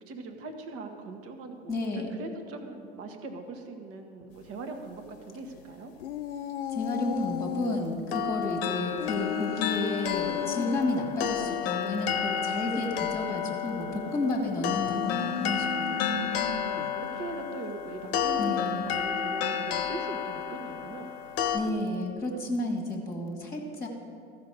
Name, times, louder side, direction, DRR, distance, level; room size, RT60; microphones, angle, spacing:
voice 1, 0.1-5.9 11.8-11.9 13.8-14.5 16.2-21.1 22.3-22.7, right 3 dB, 40° right, 5 dB, 1.3 m, -41 dB
voice 2, 1.7-2.1 6.7-16.0 18.4-18.9 21.5-23.9, left 2 dB, 10° left, 1 dB, 1.6 m, -31 dB
sound 1, 6.0-8.0 9.0-10.9 14.7-17.0, left 10 dB, 75° left, 0.6 m, -35 dB
sound 2, 8.1-21.6, left 8 dB, 55° left, 0.9 m, -31 dB
14.5 x 5.3 x 4.8 m, 2.5 s
figure-of-eight pair, 80°, 35 cm